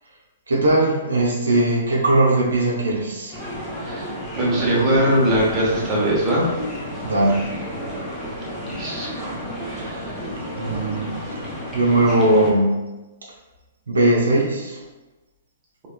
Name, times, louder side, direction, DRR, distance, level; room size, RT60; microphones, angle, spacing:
voice 1, 0.5-3.4 7.0-7.5 10.6-11.4 11.7-12.9 13.2-13.3 13.9-14.8, right 1 dB, 75° right, -3 dB, 0.7 m, -19 dB
sound 1, 3.3-12.5, equal, 10° left, 0.8 m, -31 dB
voice 2, 3.8-6.4 8.7-9.1 9.5-10.2, right 1 dB, 25° right, -5 dB, 1.1 m, -21 dB
4.3 x 3.0 x 2.3 m, 1.1 s
figure-of-eight pair, 115°, 0 cm